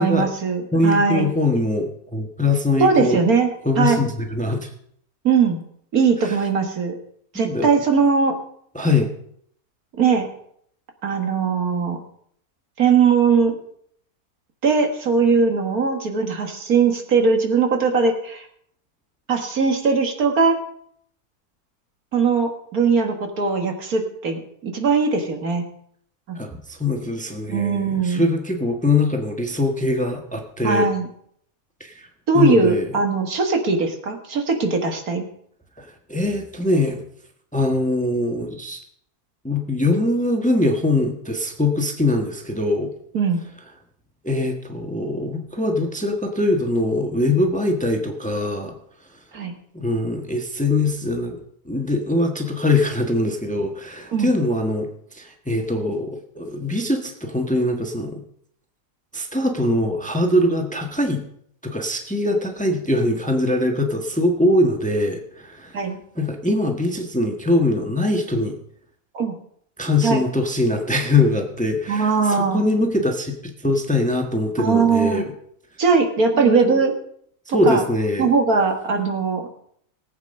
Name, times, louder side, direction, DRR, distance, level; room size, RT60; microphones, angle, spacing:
voice 1, 0.0-1.3 2.8-3.5 3.8-4.1 5.2-5.6 5.9-7.0 7.3-8.4 10.0-10.3 11.0-12.0 12.8-13.6 14.6-18.5 19.3-20.6 22.1-25.6 26.3-26.4 27.5-28.3 30.6-31.1 32.3-35.3 43.1-43.4 49.3-49.5 54.1-54.3 65.7-66.0 69.1-69.3 70.0-70.2 71.9-72.6 74.6-75.3 75.8-76.9 77.5-77.8 78.2-79.5, right 5 dB, 65° right, 4 dB, 2.1 m, -20 dB
voice 2, 0.7-3.2 3.6-4.7 6.2-6.3 7.4-7.7 8.7-9.1 26.3-30.9 31.8-32.1 32.3-32.9 35.8-37.0 37.5-38.8 39.4-42.9 44.2-48.7 49.7-51.4 51.6-58.2 59.1-61.2 61.6-65.7 66.2-68.6 69.8-75.3 76.3-76.7 77.5-78.3, left 2 dB, 5° left, 3 dB, 1.3 m, -22 dB
18.5 x 8.3 x 5.4 m, 0.66 s
omnidirectional pair, 1.6 m